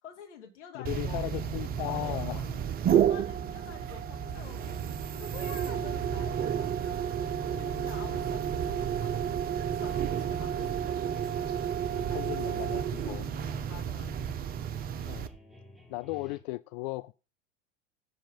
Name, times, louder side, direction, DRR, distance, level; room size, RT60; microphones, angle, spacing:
voice 1, 0.0-1.3 1.8-2.6 2.9-9.4 9.8-11.3 11.7-13.0 13.6-14.3, left 8 dB, 65° left, 2.4 m, -49 dB
voice 2, 0.7-2.4 11.9-13.3 15.1-15.3 15.9-17.1, left 21 dB, 40° left, 0.4 m, -36 dB
sound 1, 0.9-15.3, right 9 dB, 25° right, 0.7 m, -31 dB
sound 2, 3.9-6.9 7.4-15.4, right 12 dB, 40° right, 1.2 m, -51 dB
sound 3, 9.9-16.4, left 1 dB, ahead, 2.1 m, -54 dB
7.7 x 5.8 x 7.0 m
figure-of-eight pair, 80°, 38 cm